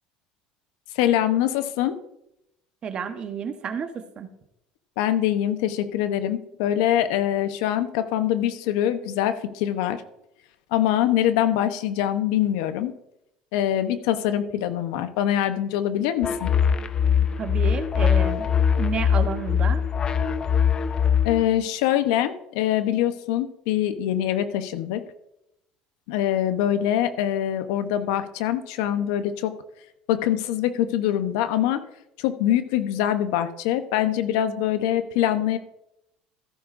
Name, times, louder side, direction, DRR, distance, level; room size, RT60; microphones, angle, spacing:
voice 1, 0.9-2.0 5.0-10.0 10.7-12.9 13.5-16.5 21.2-25.0 26.1-29.5 30.1-31.8 32.2-35.6, left 11 dB, 85° left, 10 dB, 0.9 m, -24 dB
voice 2, 2.8-4.3 17.4-18.5 18.8-19.8, right 6 dB, 35° right, 8 dB, 1.1 m, -30 dB
sound 1, 16.2-21.5, left 7 dB, 30° left, 0.6 m, -22 dB
15.0 x 9.7 x 2.6 m, 0.83 s
supercardioid pair, 120°, 3 cm